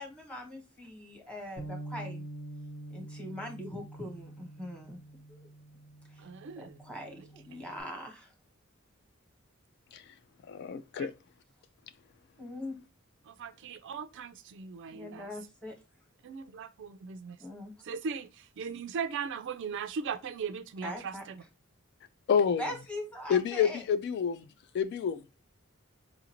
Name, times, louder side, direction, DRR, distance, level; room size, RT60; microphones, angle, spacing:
voice 1, 0.0-2.3 2.9-5.0 5.3-5.5 6.1-6.2 6.6-8.3 12.4-12.7 14.9-15.7 17.4-17.7 20.8-21.2 22.6-23.8, left 1 dB, 5° left, 1.0 m, -41 dB
Bass guitar, 1.6-7.8, right 1 dB, 85° left, 1.7 m, -46 dB
voice 2, 6.2-6.7 11.0-11.1 13.3-15.2 16.2-17.4 17.8-18.3 18.6-21.1, right 6 dB, 60° right, 0.3 m, -38 dB
voice 3, 10.5-11.1 22.3-22.7 23.3-24.5 24.7-25.2, left 7 dB, 55° left, 0.3 m, -28 dB
4.9 x 2.5 x 2.9 m
head